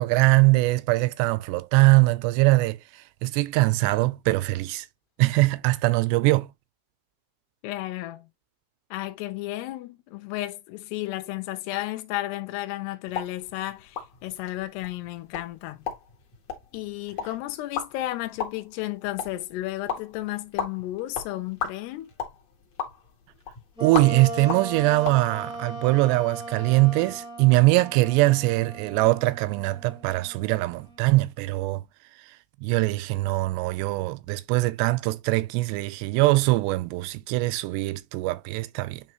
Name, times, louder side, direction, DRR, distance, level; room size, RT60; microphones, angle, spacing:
voice 1, 0.0-2.8 3.2-4.9 5.2-6.5 23.8-31.8 32.6-39.0, right 21 dB, 80° right, 2.6 m, -22 dB
voice 2, 7.6-8.3 8.9-15.8 16.7-22.1, left 16 dB, 80° left, 2.8 m, -33 dB
sound 1, 13.1-25.2, left 7 dB, 50° left, 2.4 m, -37 dB
Wind instrument woodwind instrument, 23.8-31.2, right 2 dB, ahead, 1.3 m, -38 dB
9.4 x 3.3 x 3.1 m
omnidirectional pair, 5.1 m